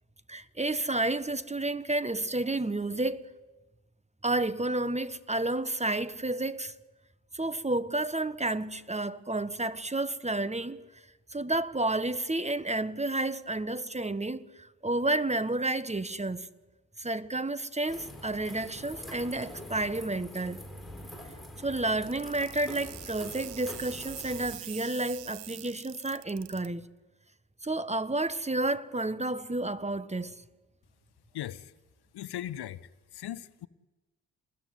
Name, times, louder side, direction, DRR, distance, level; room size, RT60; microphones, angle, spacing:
voice 1, 0.3-3.3 4.2-6.7 7.3-10.9 11.3-16.5 17.0-20.6 21.6-26.9 27.6-30.4, right 2 dB, 15° right, 1.4 m, -31 dB
sound 1, 17.9-24.6, left 1 dB, ahead, 7.5 m, -45 dB
sound 2, 22.1-26.7, right 17 dB, 75° right, 1.0 m, -44 dB
voice 2, 31.3-31.7 32.1-33.7, left 12 dB, 60° left, 1.0 m, -39 dB
27.5 x 21.0 x 9.6 m
hypercardioid pair, 45°, 43 cm